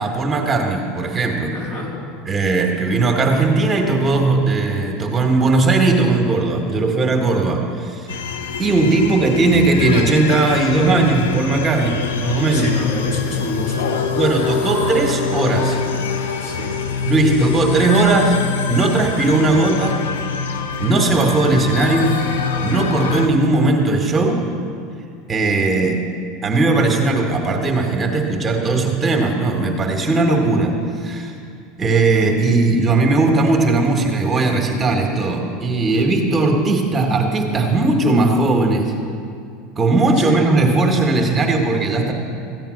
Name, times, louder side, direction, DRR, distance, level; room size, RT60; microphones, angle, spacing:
voice 1, 0.0-1.5 2.2-8.1 8.6-12.7 14.1-15.8 17.0-18.4 18.7-20.0 20.8-22.2 22.6-24.4 25.3-25.9 26.4-30.7 31.0-31.3 31.8-38.9 39.8-42.1, right 3 dB, 25° right, 2 dB, 1.7 m, -18 dB
voice 2, 1.5-2.0 12.5-14.1 16.4-16.8 40.2-40.5, left 1 dB, 55° left, -3 dB, 3.8 m, -28 dB
sound 1, 8.1-23.3, left 6 dB, 90° left, 1.0 m, -24 dB
14.5 x 8.9 x 6.5 m, 2.3 s
hypercardioid pair, 100°, 0 cm